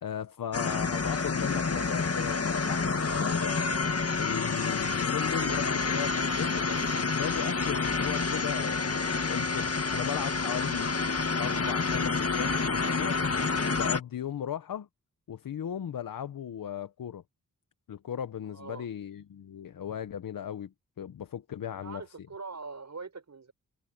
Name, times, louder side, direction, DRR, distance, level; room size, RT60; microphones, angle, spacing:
voice 1, 0.0-3.7 4.2-10.9 11.4-13.2 13.7-14.9 15.3-17.2 17.9-22.3, left 9 dB, 85° left, 0.9 m, -37 dB
sound 1, 0.5-14.0, left 4 dB, 45° left, 1.9 m, -28 dB
voice 2, 18.5-18.9 21.6-23.5, right 4 dB, 55° right, 6.4 m, -43 dB
cardioid pair, 55°, 33 cm